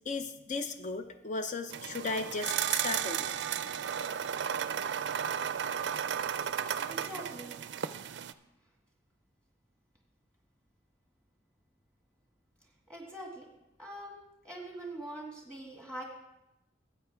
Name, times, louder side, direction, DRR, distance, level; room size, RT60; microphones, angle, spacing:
voice 1, 0.1-3.3, left 3 dB, 45° left, 8 dB, 0.5 m, -36 dB
sound 1, 1.7-8.3, right 8 dB, 70° right, 0.4 m, -34 dB
voice 2, 6.9-7.5 12.9-13.5 13.8-14.2 14.4-16.0, right 1 dB, 5° left, -1 dB, 1.9 m, -43 dB
13.0 x 8.2 x 3.4 m, 0.89 s
head